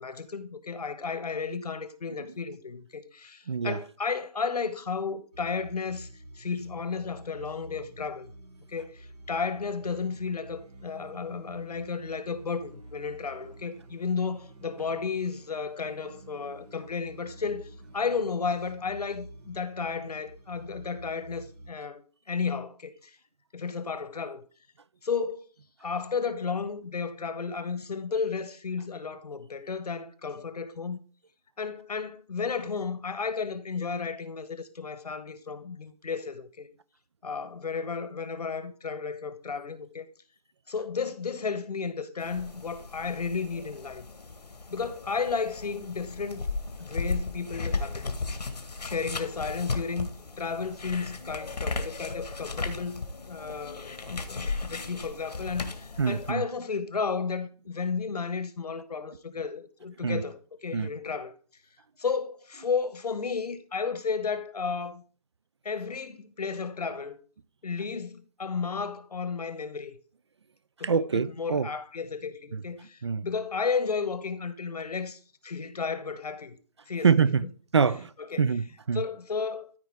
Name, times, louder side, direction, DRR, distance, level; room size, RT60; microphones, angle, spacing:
voice 1, 0.0-6.1 6.3-8.3 8.7-22.0 22.3-23.2 23.5-24.4 25.0-25.5 25.8-31.0 31.6-36.7 37.2-40.1 40.7-44.0 44.7-46.4 46.8-48.2 48.8-50.1 50.4-61.3 62.0-65.0 65.6-67.2 67.6-70.0 70.8-76.5 76.9-77.1 77.4-77.5 78.3-78.4 78.9-79.7, left 5 dB, 75° left, 1.2 m, -33 dB
voice 2, 3.5-3.8 56.0-56.4 60.0-60.2 60.7-60.9 70.8-71.7 72.5-72.6 73.0-73.3 77.0-77.4 77.7-78.1 78.4-79.0, right 5 dB, 45° right, 0.4 m, -25 dB
sound 1, 5.3-21.7, right 1 dB, 75° right, 2.0 m, -49 dB
sound 2, 42.2-56.3, left 3 dB, 90° left, 1.5 m, -36 dB
13.5 x 4.7 x 3.5 m
hypercardioid pair, 165°, 20 cm